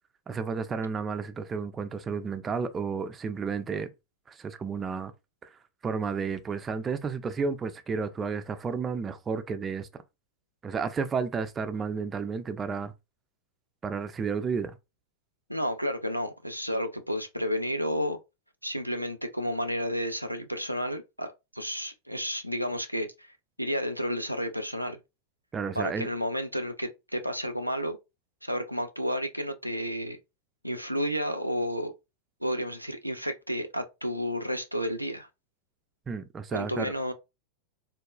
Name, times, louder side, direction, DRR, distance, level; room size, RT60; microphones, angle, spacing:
voice 1, 0.3-3.9 4.3-5.1 5.4-5.5 5.8-9.9 10.6-12.9 13.8-14.8 25.5-26.1 36.1-36.9, right 5 dB, 20° right, 0.3 m, -32 dB
voice 2, 15.5-18.2 18.6-23.3 23.6-25.0 25.8-28.0 28.4-30.2 30.6-31.9 32.4-35.3 36.5-37.1, equal, 90° right, 0.4 m, -31 dB
3.7 x 2.3 x 2.3 m
figure-of-eight pair, 90°, 0 cm